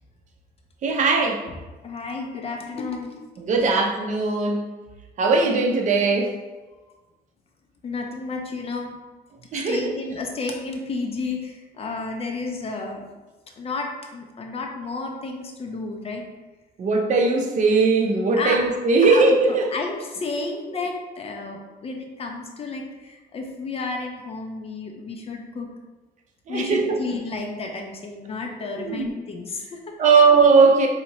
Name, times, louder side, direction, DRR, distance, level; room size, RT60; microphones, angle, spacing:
voice 1, 0.8-1.4 3.4-4.6 5.2-6.4 9.5-9.8 16.8-19.7 26.5-27.0 28.7-29.1 30.0-30.9, right 4 dB, 45° right, 2 dB, 0.7 m, -19 dB
voice 2, 1.8-3.2 7.8-9.0 9.5-13.0 13.6-16.2 18.4-18.6 19.0-19.2 19.5-25.7 26.5-29.8, left 3 dB, 35° left, 2 dB, 0.7 m, -31 dB
4.2 x 2.8 x 2.8 m, 1.2 s
cardioid pair, 110°, 17 cm